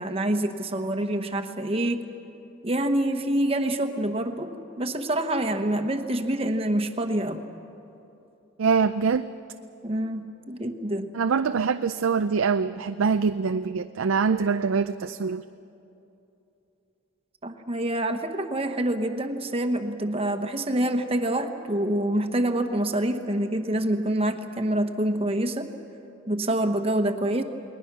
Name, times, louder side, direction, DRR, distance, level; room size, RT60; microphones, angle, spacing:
voice 1, 0.0-2.0 2.6-4.5 4.8-7.4 9.8-11.1 17.4-25.7 26.3-27.4, right 1 dB, 30° right, 6 dB, 1.1 m, -26 dB
voice 2, 8.6-9.3 11.1-15.4, right 5 dB, 90° right, 9 dB, 0.5 m, -24 dB
29.0 x 20.5 x 6.1 m, 2.8 s
head